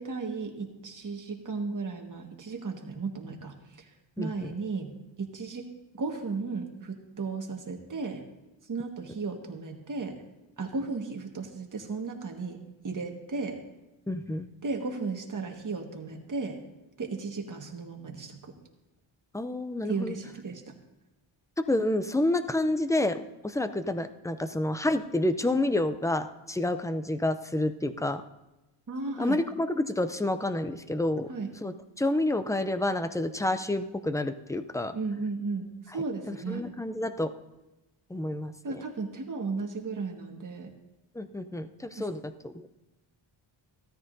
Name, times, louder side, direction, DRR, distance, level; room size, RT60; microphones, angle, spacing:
voice 1, 0.0-5.7 5.9-8.2 8.6-10.2 10.6-13.6 14.6-16.6 17.0-18.5 19.8-20.7 28.9-29.4 31.3-31.5 34.9-36.7 38.6-40.7 42.0-42.1, right 4 dB, 40° right, 2 dB, 1.6 m, -35 dB
voice 2, 4.2-4.5 14.1-14.5 19.3-20.2 21.6-28.2 29.2-31.3 31.6-34.9 36.5-37.3 38.1-38.5 41.2-42.7, left 1 dB, 5° left, 10 dB, 0.4 m, -29 dB
16.0 x 13.5 x 2.7 m, 1.0 s
wide cardioid pair, 130°, 48 cm